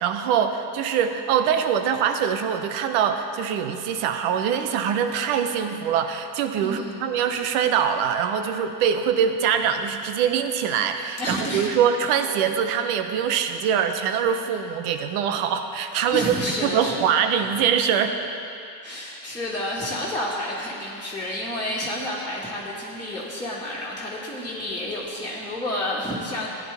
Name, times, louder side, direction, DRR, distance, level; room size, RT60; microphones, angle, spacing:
voice 1, 0.0-18.3, right 8 dB, 85° right, 7 dB, 1.0 m, -23 dB
voice 2, 6.6-7.1 11.2-11.7 16.1-16.9 18.8-26.5, left 1 dB, 5° left, -9 dB, 1.9 m, -30 dB
15.0 x 10.5 x 3.5 m, 2.7 s
supercardioid pair, 95°, 50 cm